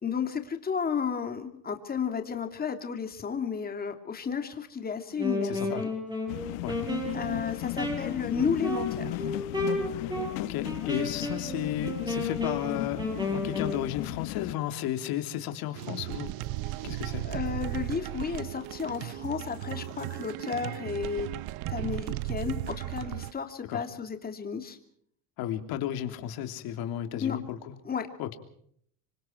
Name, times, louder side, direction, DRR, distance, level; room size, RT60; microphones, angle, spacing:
voice 1, 0.0-5.9 7.1-9.3 17.2-21.3 21.7-24.8 27.2-27.4 27.8-28.1, left 6 dB, 25° left, 7 dB, 2.9 m, -32 dB
Wind instrument woodwind instrument, 5.1-13.8, left 1 dB, 10° right, 7.2 m, -33 dB
voice 2, 5.4-5.9 6.6-6.8 10.4-16.3 16.8-17.3 23.6-23.9 25.4-27.7 28.2-28.4, left 11 dB, 60° left, 7 dB, 3.2 m, -33 dB
sound 1, 6.3-14.6, left 20 dB, 80° left, 1.2 m, -36 dB
sound 2, 15.7-23.3, right 17 dB, 65° right, 1.0 m, -35 dB
27.0 x 24.5 x 4.6 m, 0.65 s
cardioid pair, 135°, 40 cm